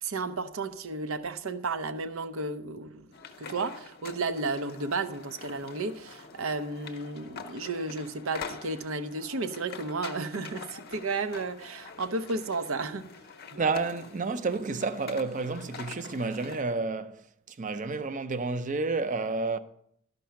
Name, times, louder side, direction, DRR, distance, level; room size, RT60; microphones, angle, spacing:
voice 1, 0.0-3.1 3.4-13.1 13.5-13.6, right 3 dB, 75° right, 0.7 m, -33 dB
sound 1, 3.1-16.6, left 5 dB, 45° left, 0.7 m, -45 dB
voice 2, 13.5-19.6, right 3 dB, 35° right, 0.5 m, -30 dB
12.5 x 5.3 x 5.8 m
head